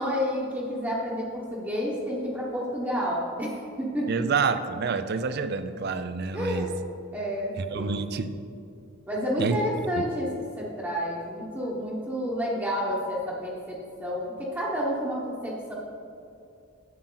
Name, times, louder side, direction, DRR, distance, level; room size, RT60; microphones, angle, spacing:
voice 1, 0.0-3.5 3.8-4.2 6.3-6.7 7.1-8.0 9.1-10.3 10.6-15.7, equal, 10° right, -7 dB, 1.0 m, -30 dB
voice 2, 4.1-6.7 7.6-8.4 9.4-9.6 10.0-10.1, right 5 dB, 50° right, 10 dB, 0.5 m, -28 dB
11.0 x 7.3 x 3.9 m, 2.5 s
head